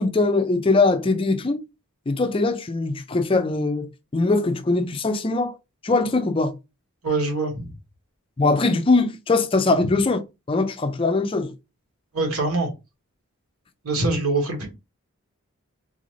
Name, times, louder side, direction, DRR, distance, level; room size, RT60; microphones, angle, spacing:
voice 1, 0.0-1.6 2.1-5.6 5.8-6.6 8.4-10.2 10.5-11.5, left 3 dB, 25° left, 0.4 m, -21 dB
voice 2, 7.0-7.7 12.1-12.7 13.8-14.7, right 2 dB, 80° right, 1.4 m, -23 dB
3.9 x 2.6 x 3.0 m
head